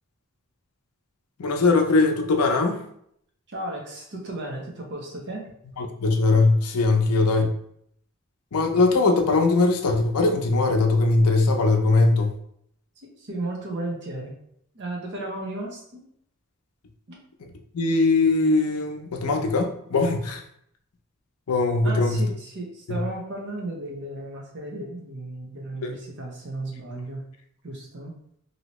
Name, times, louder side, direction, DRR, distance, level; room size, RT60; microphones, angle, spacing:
voice 1, 1.4-2.8 5.8-7.5 8.5-12.3 17.7-20.4 21.5-22.3 22.9-23.0 25.8-26.0, left 3 dB, 90° left, 4 dB, 0.5 m, -21 dB
voice 2, 3.5-5.5 13.0-14.4 14.7-16.1 17.1-17.2 21.8-27.2 27.6-28.1, right 2 dB, 55° right, 0 dB, 0.8 m, -34 dB
2.9 x 2.7 x 3.0 m, 0.70 s
head